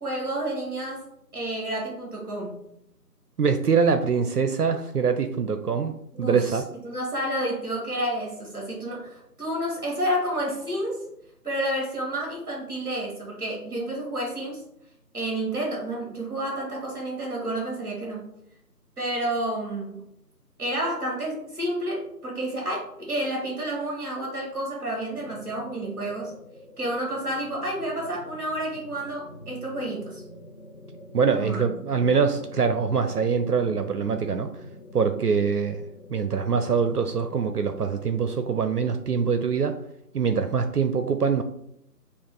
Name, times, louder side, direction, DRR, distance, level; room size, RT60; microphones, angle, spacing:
voice 1, 0.0-1.0 1.3-2.6 6.1-6.6 6.8-11.0 11.4-14.6 15.1-18.3 19.0-20.0 20.6-26.3 26.8-30.2 31.4-31.6, right 1 dB, 15° right, -2 dB, 1.3 m, -30 dB
voice 2, 3.4-6.6 31.1-34.6 34.9-35.8 36.1-39.8 40.1-41.4, right 6 dB, 70° right, 7 dB, 0.5 m, -24 dB
sound 1, 25.1-39.1, left 1 dB, 55° left, 0.5 m, -46 dB
5.1 x 2.4 x 3.8 m, 0.78 s
figure-of-eight pair, 160°, 49 cm